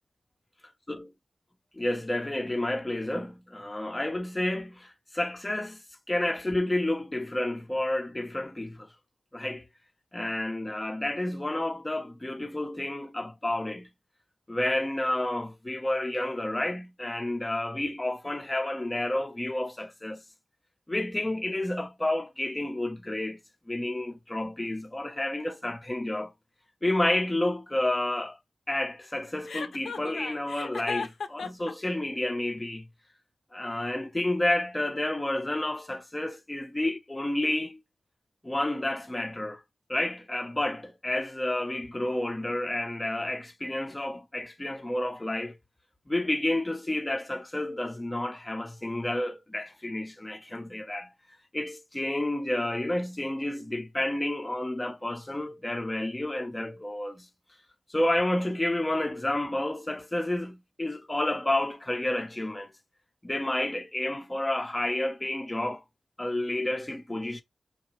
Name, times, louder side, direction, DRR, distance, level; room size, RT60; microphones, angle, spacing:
voice 1, 1.8-5.8 6.1-8.9 9.3-9.6 10.1-13.9 14.5-20.2 20.9-23.4 23.7-26.3 26.8-28.4 28.7-32.8 33.5-37.8 38.4-39.6 39.9-45.6 46.1-51.1 51.5-57.3 57.9-62.7 63.2-65.8 66.2-67.4, left 1 dB, 20° left, 0.6 m, -30 dB
Chuckle chortle, 29.5-31.7, left 5 dB, 80° left, 0.6 m, -35 dB
4.4 x 2.8 x 3.0 m
cardioid pair, 65°, 0 cm